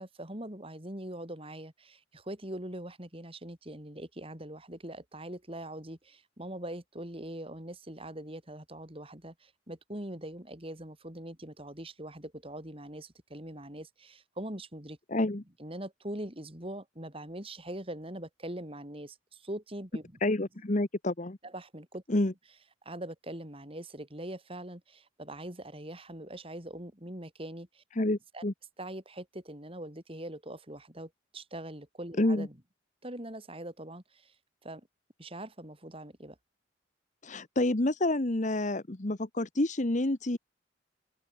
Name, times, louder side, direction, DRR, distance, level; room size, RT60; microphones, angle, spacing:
voice 1, 0.0-15.3 15.6-20.2 21.4-22.0 22.8-27.8 28.3-28.5 28.8-32.6 33.0-34.3 34.6-34.8 35.2-36.4, right 1 dB, 30° right, 4.4 m, -42 dB
voice 2, 15.1-15.4 20.2-21.4 22.1-22.3 28.0-28.5 32.2-32.5 37.2-40.4, left 1 dB, 40° left, 1.2 m, -28 dB
head